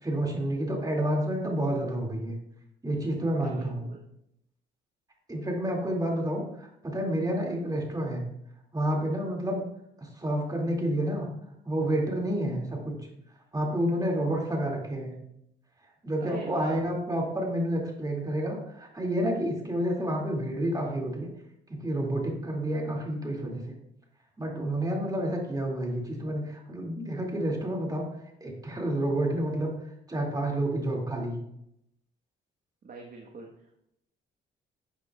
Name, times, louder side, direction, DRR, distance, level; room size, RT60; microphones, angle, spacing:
voice 1, 0.0-2.4 2.8-3.9 5.3-8.3 8.7-9.7 10.0-11.3 11.6-13.0 13.5-15.2 16.0-21.3 21.7-23.6 24.4-28.1 28.4-29.7 30.1-31.4, right 1 dB, 20° right, 0 dB, 2.4 m, -29 dB
voice 2, 3.4-4.0 14.3-14.4 16.2-16.8 26.4-26.5 32.8-33.7, right 3 dB, 45° right, 0 dB, 1.4 m, -43 dB
11.5 x 8.0 x 2.4 m, 0.80 s
cardioid pair, 90°, 20 cm